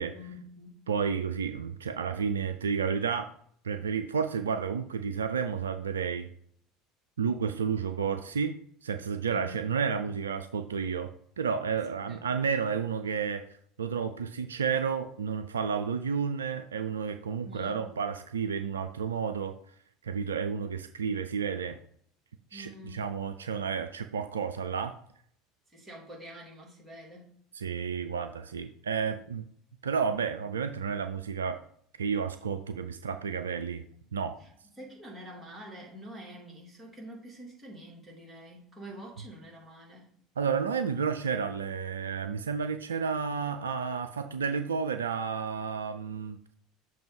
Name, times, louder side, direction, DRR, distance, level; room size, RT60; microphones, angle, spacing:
voice 1, 0.0-0.8 9.3-9.6 12.1-12.3 17.4-17.9 22.5-23.1 25.7-27.3 33.7-33.8 34.4-40.1, equal, 15° right, -2 dB, 2.5 m, -47 dB
voice 2, 0.9-3.3 3.6-6.3 7.2-8.6 8.8-13.4 13.8-19.5 20.0-21.8 22.5-24.9 27.5-29.4 29.8-31.6 32.0-33.8 34.1-34.4 40.4-46.4, right 6 dB, 75° right, 8 dB, 0.3 m, -31 dB
6.7 x 2.9 x 5.8 m, 0.63 s
figure-of-eight pair, 70°, 0 cm